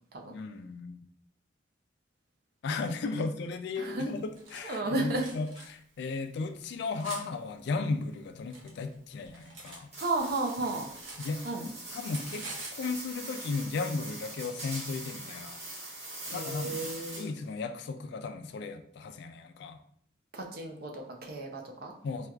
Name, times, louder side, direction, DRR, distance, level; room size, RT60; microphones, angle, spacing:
voice 1, 0.3-1.0 2.6-9.9 11.2-11.4 11.9-15.6 16.3-16.9 17.2-19.8 22.0-22.3, left 4 dB, 60° left, 8 dB, 0.3 m, -35 dB
Cutlery silverware, 4.0-4.6 5.1-5.7 6.4-7.2 8.1-9.8 10.1-11.7 12.0-12.8, right 2 dB, 90° right, 0.8 m, -45 dB
voice 2, 4.6-5.2 10.0-10.9 11.4-11.7 16.2-17.3 20.3-21.9, right 2 dB, 55° right, 2 dB, 0.6 m, -33 dB
sound 1, 9.9-17.5, right 2 dB, 35° right, 1.1 m, -42 dB
4.3 x 2.3 x 2.3 m, 0.62 s
head